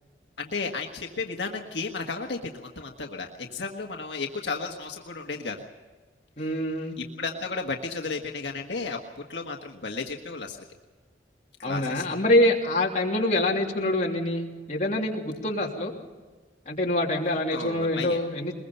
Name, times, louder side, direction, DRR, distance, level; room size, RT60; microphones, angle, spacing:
voice 1, 0.4-5.6 7.0-9.0 9.3-10.6 11.6-12.0 17.5-18.2, left 4 dB, 85° left, 2 dB, 1.5 m, -33 dB
voice 2, 6.4-7.0 11.6-15.9 16.6-18.5, left 1 dB, 40° left, -2 dB, 3.1 m, -25 dB
22.0 x 21.5 x 5.5 m, 1.4 s
head